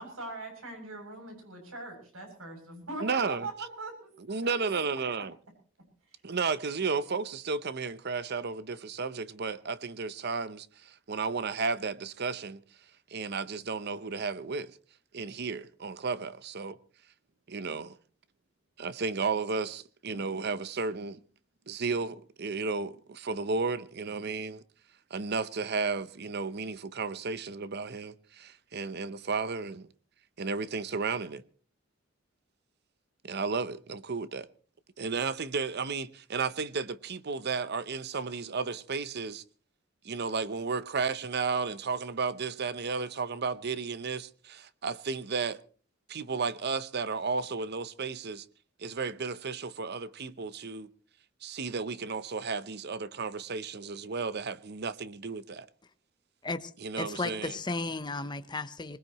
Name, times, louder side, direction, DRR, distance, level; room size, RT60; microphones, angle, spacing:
voice 1, 0.0-4.1 4.4-4.8 6.1-6.2, right 2 dB, 85° right, 7.6 m, -41 dB
voice 2, 3.0-3.5 4.3-5.4 6.2-12.6 13.1-14.8 15.1-16.8 17.5-18.0 18.8-21.2 21.7-24.6 25.1-29.9 30.4-31.4 33.2-34.5 35.0-39.4 40.0-45.6 46.1-48.5 48.8-50.9 51.4-55.7 56.8-57.6, right 4 dB, 55° right, 0.8 m, -33 dB
voice 3, 57.0-59.0, left 3 dB, 20° left, 0.9 m, -34 dB
21.5 x 20.0 x 3.1 m
head